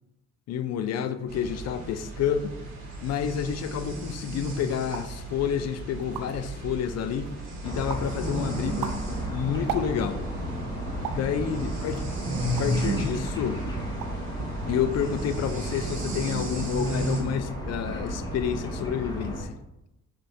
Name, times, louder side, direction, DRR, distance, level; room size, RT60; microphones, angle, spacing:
voice 1, 0.5-2.6 3.0-7.3 7.6-8.9 9.3-10.2 11.0-12.0 12.6-13.6 14.6-19.6, left 8 dB, 60° left, 0.4 m, -29 dB
sound 1, 1.3-17.2, right 2 dB, 60° right, 1.2 m, -35 dB
sound 2, 4.9-5.2 5.7-5.8 6.0-6.5 7.0-7.5 7.9-8.2 8.6-10.3 11.0-11.3 11.9-12.9 13.3-13.5 13.8-14.3 14.5-15.0, right 8 dB, 85° right, 0.5 m, -37 dB
sound 3, 7.6-19.4, equal, 15° left, 0.9 m, -33 dB
6.0 x 3.2 x 2.7 m
cardioid pair, 90°, 30 cm